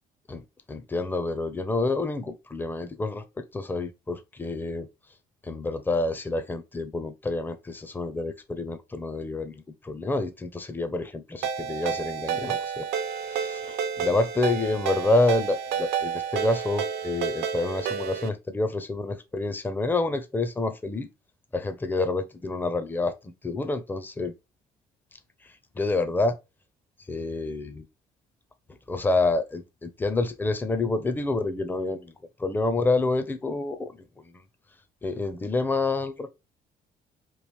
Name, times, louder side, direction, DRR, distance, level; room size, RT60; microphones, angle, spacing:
voice 1, 0.3-4.9 5.4-21.1 21.5-24.3 25.4-26.4 27.1-27.9 28.9-32.1 32.4-34.4 35.0-36.3, left 2 dB, 10° left, 0.5 m, -28 dB
Ringtone, 11.4-18.3, right 7 dB, 80° right, 0.6 m, -30 dB
3.1 x 2.5 x 3.2 m
cardioid pair, 110°, 17 cm